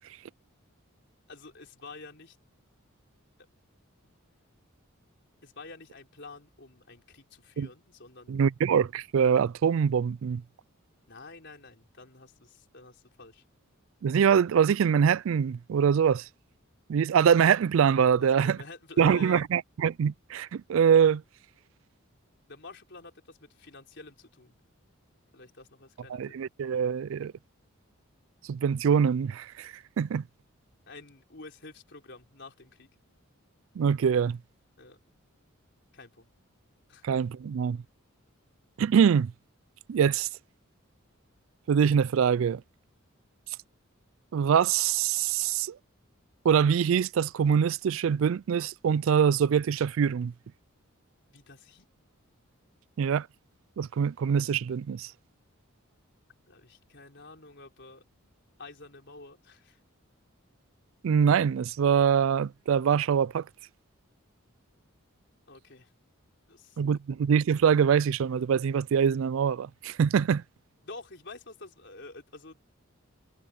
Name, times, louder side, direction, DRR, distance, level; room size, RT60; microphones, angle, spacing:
voice 1, 1.3-2.4 5.4-8.3 11.1-13.4 18.2-19.4 22.5-24.6 25.3-26.2 30.9-32.9 34.8-35.0 35.9-36.3 36.9-37.1 51.3-51.9 56.5-58.0 58.6-59.8 65.5-65.9 66.5-66.8 70.8-72.6, left 3 dB, 55° left, 4.2 m, -48 dB
voice 2, 8.3-10.4 14.0-16.3 16.9-18.6 19.0-21.2 26.1-27.3 28.5-30.2 33.8-34.4 37.0-37.8 38.8-39.3 39.9-40.3 41.7-42.6 44.3-45.8 46.4-50.3 53.0-53.3 53.8-55.1 61.0-63.4 66.8-70.4, right 7 dB, 65° right, 0.3 m, -24 dB
head